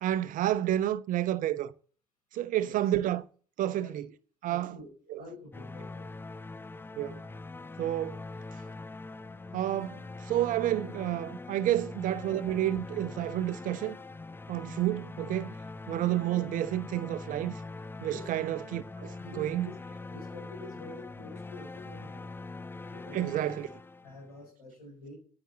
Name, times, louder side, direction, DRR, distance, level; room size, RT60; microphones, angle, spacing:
voice 1, 0.0-1.7 2.3-3.2 3.6-4.1 4.4-4.7 5.1-5.2 7.0-7.2 7.8-8.2 9.5-10.0 10.3-14.0 14.5-15.5 15.9-17.6 18.0-19.7 23.1-23.7, right 13 dB, 45° right, 0.8 m, -30 dB
voice 2, 2.6-2.9 3.8-3.9 4.5-6.1 11.6-11.7 18.1-18.3 19.2-19.7 20.1-22.3 22.9-23.5 24.0-25.2, left 2 dB, 80° left, 5.0 m, -48 dB
sound 1, 5.5-24.4, left 3 dB, 10° left, 0.6 m, -43 dB
9.8 x 9.2 x 7.2 m
figure-of-eight pair, 55°, 19 cm